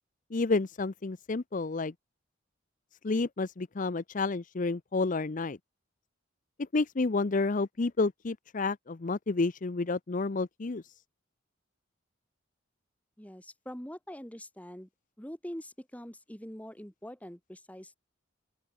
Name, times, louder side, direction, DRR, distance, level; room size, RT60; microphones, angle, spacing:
voice 1, 0.3-1.9 3.0-5.6 6.7-10.8, left 3 dB, 40° left, 0.6 m, -30 dB
voice 2, 13.2-14.9 15.2-18.0, equal, 5° left, 2.5 m, -44 dB
open air
head